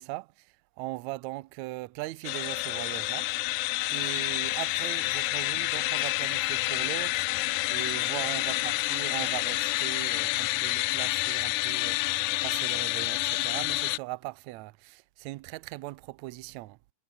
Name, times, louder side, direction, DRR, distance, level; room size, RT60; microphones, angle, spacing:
voice 1, 0.0-3.3 3.9-16.8, right 20 dB, 90° right, 1.6 m, -39 dB
sound 1, 2.2-14.0, left 21 dB, 90° left, 1.7 m, -29 dB
omnidirectional pair, 4.0 m